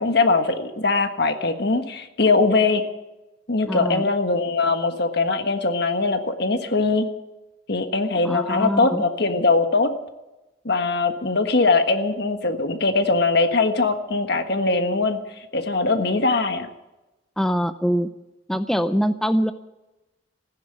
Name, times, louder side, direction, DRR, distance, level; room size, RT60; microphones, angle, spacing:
voice 1, 0.0-2.8 3.5-7.1 7.7-9.9 10.6-15.2 15.5-16.7, left 3 dB, 65° left, 7 dB, 1.5 m, -21 dB
voice 2, 3.7-4.1 8.2-9.0 17.4-18.1 18.5-19.5, equal, ahead, 9 dB, 0.5 m, -23 dB
15.5 x 10.5 x 8.8 m, 1.0 s
head